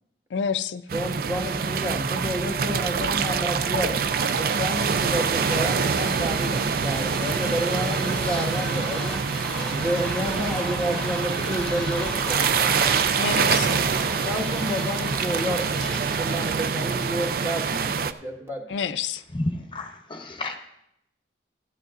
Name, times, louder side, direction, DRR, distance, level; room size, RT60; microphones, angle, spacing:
voice 1, 0.3-0.8 13.2-13.8 18.7-19.2, left 7 dB, 90° left, 0.4 m, -28 dB
voice 2, 0.9-3.9 4.3-9.2 9.7-13.1 14.2-18.8, equal, 15° right, 1.6 m, -30 dB
sound 1, 0.9-18.1, right 5 dB, 55° right, 0.4 m, -25 dB
sound 2, 3.7-17.2, left 1 dB, 5° left, 1.4 m, -37 dB
voice 3, 19.3-20.6, left 1 dB, 30° left, 0.8 m, -31 dB
15.5 x 11.0 x 2.5 m
head